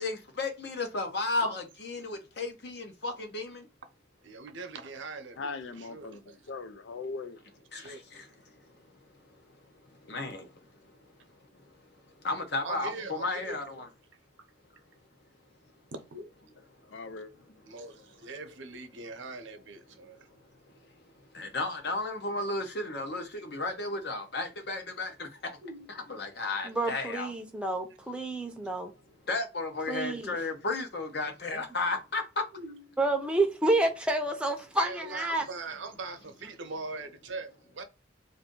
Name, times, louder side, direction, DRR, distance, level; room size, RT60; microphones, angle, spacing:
voice 1, 0.0-3.6 7.7-7.8 10.1-10.4 12.2-13.9 21.3-25.3 25.9-27.3 29.3-32.2, left 2 dB, 60° left, 0.8 m, -33 dB
voice 2, 4.2-6.4 7.7-8.0 12.6-13.6 15.9-16.3 17.7-20.2 25.6-25.9 32.5-32.8 34.8-37.8, right 3 dB, 90° right, 0.7 m, -41 dB
voice 3, 5.4-7.4 16.9-17.3, left 4 dB, 85° left, 0.4 m, -39 dB
voice 4, 26.6-28.9 29.9-30.3 33.0-35.5, right 2 dB, 5° right, 0.6 m, -29 dB
2.6 x 2.6 x 3.7 m
head